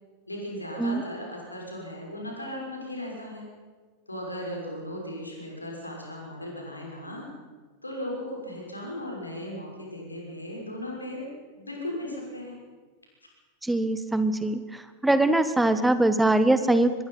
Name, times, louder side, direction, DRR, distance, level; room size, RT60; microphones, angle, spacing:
voice 1, 0.3-3.5 4.1-7.3 7.8-12.5, left 1 dB, 85° left, -1 dB, 6.2 m, -37 dB
voice 2, 13.6-14.6 15.0-16.9, right 2 dB, 5° right, 11 dB, 1.4 m, -22 dB
24.5 x 20.5 x 5.8 m, 1.4 s
figure-of-eight pair, 90°, 0 cm